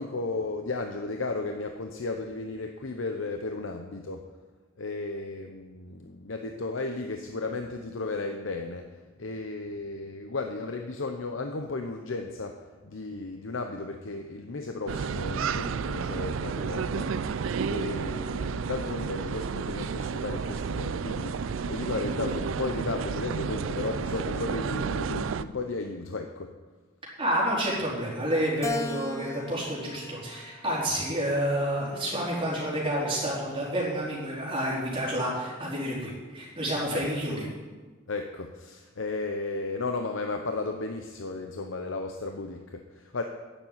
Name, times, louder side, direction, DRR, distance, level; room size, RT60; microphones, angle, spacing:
voice 1, 0.0-4.2 4.8-17.1 17.7-26.5 36.9-37.1 38.1-43.2, left 3 dB, 75° left, 4 dB, 0.8 m, -34 dB
sound 1, 14.9-25.4, right 5 dB, 80° right, 0.4 m, -31 dB
voice 2, 27.2-37.4, equal, 25° right, -5 dB, 4.1 m, -29 dB
Keyboard (musical), 28.6-31.1 31.7-32.9, left 2 dB, 15° left, 0.8 m, -38 dB
9.9 x 7.3 x 9.0 m, 1.3 s
head